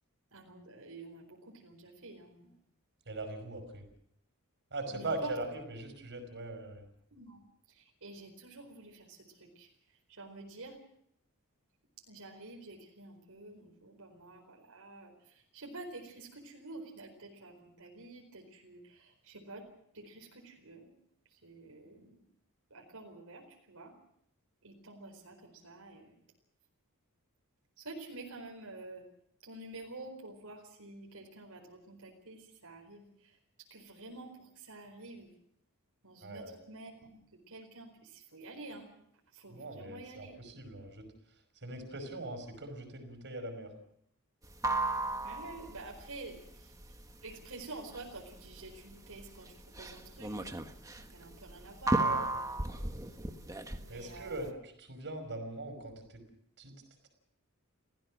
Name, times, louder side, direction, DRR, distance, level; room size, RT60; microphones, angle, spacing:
voice 1, 0.3-2.6 4.9-5.3 7.1-7.4 7.7-9.7 10.1-10.8 12.1-19.7 19.9-20.9 21.3-22.2 22.7-23.9 24.6-26.1 27.8-29.0 29.4-33.4 33.7-35.3 36.0-37.2 37.5-38.9 39.3-40.3 45.2-46.7 47.2-50.5 51.0-52.5 53.8-54.5, right 2 dB, 75° right, 0 dB, 4.6 m, -49 dB
voice 2, 3.1-3.8 4.7-6.8 36.2-36.6 39.5-41.1 41.6-43.7 51.9-52.2 52.7-52.8 53.9-56.2 56.6-56.7, right 2 dB, 55° right, 6 dB, 5.5 m, -41 dB
sound 1, 44.4-54.5, right 2 dB, 15° right, 1.4 m, -35 dB
30.0 x 15.5 x 6.3 m, 0.70 s
head